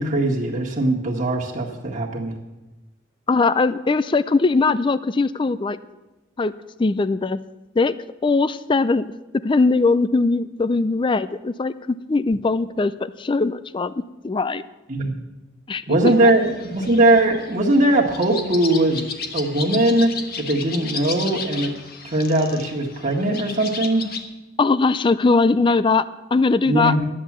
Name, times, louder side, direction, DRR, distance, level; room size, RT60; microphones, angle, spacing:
voice 1, 0.0-2.3 14.9-15.2 15.9-20.1 20.4-21.7 22.0-24.1 26.7-27.1, right 1 dB, 40° right, -2 dB, 1.8 m, -20 dB
voice 2, 3.3-5.8 6.4-6.5 6.8-7.4 7.8-8.0 8.2-9.1 9.4-13.9 14.2-14.6 15.7-16.3 24.6-26.9, left 3 dB, 25° left, 15 dB, 0.4 m, -20 dB
sound 1, 16.1-24.2, left 5 dB, 50° left, 1.3 m, -34 dB
12.5 x 10.0 x 7.4 m, 1.1 s
head